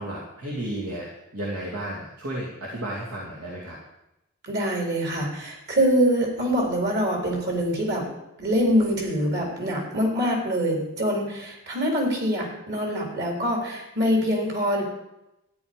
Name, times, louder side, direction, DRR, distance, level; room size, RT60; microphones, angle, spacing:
voice 1, 0.0-3.8, right 1 dB, 80° right, -5 dB, 2.6 m, -33 dB
voice 2, 4.4-8.1 8.4-14.8, equal, 50° right, 0 dB, 3.7 m, -24 dB
13.0 x 10.0 x 5.2 m, 0.89 s
head